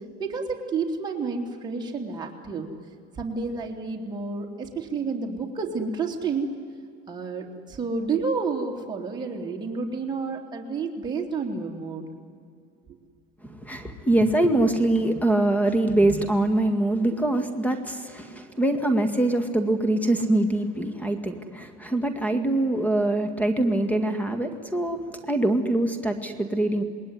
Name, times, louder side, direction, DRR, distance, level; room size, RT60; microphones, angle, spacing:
voice 1, 0.2-2.7 3.1-6.5 7.1-12.0, right 4 dB, 20° right, 0 dB, 3.1 m, -30 dB
voice 2, 13.4-26.8, right 1 dB, 5° left, 8 dB, 1.9 m, -24 dB
27.0 x 20.5 x 9.6 m, 2.2 s
cardioid pair, 125°, 21 cm